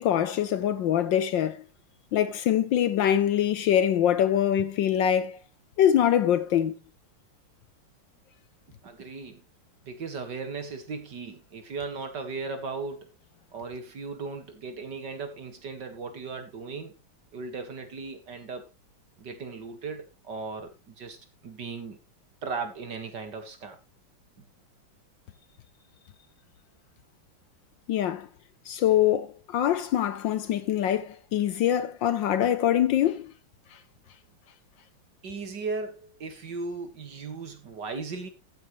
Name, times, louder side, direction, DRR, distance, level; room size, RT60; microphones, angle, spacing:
voice 1, 0.0-1.6 2.1-5.4 5.8-6.7 27.9-28.3 28.7-33.3, left 10 dB, 70° left, 1.3 m, -24 dB
voice 2, 8.8-9.4 9.9-13.1 13.5-17.0 17.3-18.7 19.2-22.0 22.4-23.8 35.2-38.3, right 4 dB, 55° right, 2.4 m, -37 dB
14.0 x 9.3 x 3.2 m
omnidirectional pair, 2.4 m